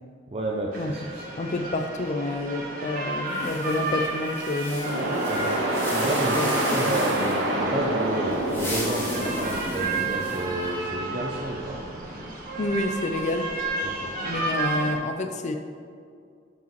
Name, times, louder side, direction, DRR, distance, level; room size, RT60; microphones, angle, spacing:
voice 1, 0.3-1.3 5.3-5.6 5.9-11.8 13.8-14.1, right 1 dB, 30° right, -1 dB, 0.6 m, -31 dB
sound 1, 0.7-14.9, right 2 dB, 50° right, 1.3 m, -32 dB
voice 2, 1.4-5.5 6.3-7.0 9.2-9.3 12.6-13.5 14.2-15.6, left 2 dB, 40° left, 5 dB, 0.5 m, -29 dB
sound 2, 3.3-7.5 8.3-10.6, left 1 dB, 15° left, 1.8 m, -37 dB
sound 3, 4.8-12.3, right 1 dB, 75° right, 1.2 m, -28 dB
12.0 x 5.0 x 3.1 m, 2.2 s
head